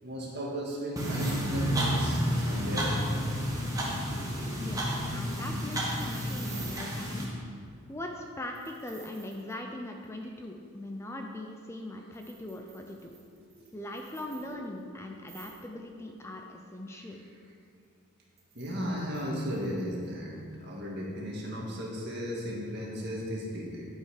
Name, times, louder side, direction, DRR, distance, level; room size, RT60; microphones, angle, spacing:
voice 1, 0.0-3.5 4.2-5.0 13.4-13.7 14.4-14.5 18.5-23.9, equal, 50° right, -3 dB, 1.7 m, -36 dB
sound 1, 1.0-7.2, equal, 15° right, 1.3 m, -30 dB
sound 2, 1.9-2.4 2.7-2.8 3.0-3.1 5.2-6.9 8.5-9.6 10.0-10.1 12.1-14.8 15.2-15.7 18.4-20.1, right 6 dB, 70° right, 2.1 m, -52 dB
voice 2, 4.6-7.3 7.9-13.1 13.7-17.3, left 1 dB, 10° left, 2 dB, 0.4 m, -41 dB
11.5 x 5.5 x 4.9 m, 2.3 s
head